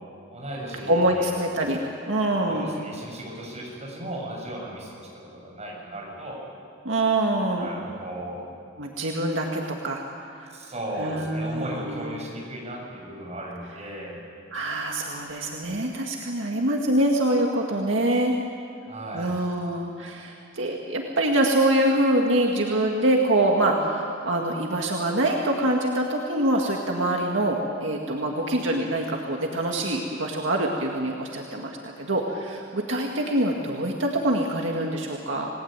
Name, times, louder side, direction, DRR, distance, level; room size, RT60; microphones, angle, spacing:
voice 1, 0.3-1.4 2.5-6.4 7.6-8.4 10.5-14.2 18.9-19.3, right 1 dB, 35° right, -2 dB, 7.0 m, -36 dB
voice 2, 0.9-2.7 6.8-7.7 8.8-10.0 10.4-10.6 11.0-12.1 14.5-18.3 19.1-35.5, right 1 dB, 75° right, 0 dB, 2.1 m, -25 dB
28.0 x 19.5 x 9.0 m, 2.4 s
head